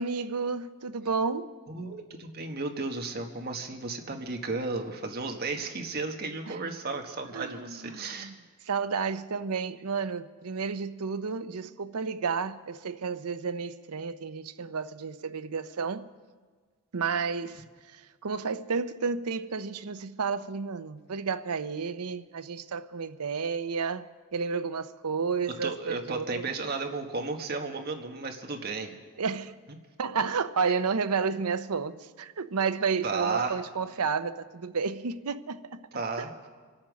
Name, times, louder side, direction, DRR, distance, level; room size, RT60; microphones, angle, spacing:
voice 1, 0.0-1.5 6.5-6.6 7.3-8.3 8.6-16.1 16.9-26.5 29.2-29.6 30.0-35.8, right 5 dB, 90° right, 0.7 m, -31 dB
voice 2, 1.7-8.3 25.6-28.9 30.7-30.8 33.0-33.6 35.9-36.5, right 3 dB, 45° right, 1.5 m, -34 dB
25.5 x 8.7 x 6.3 m
head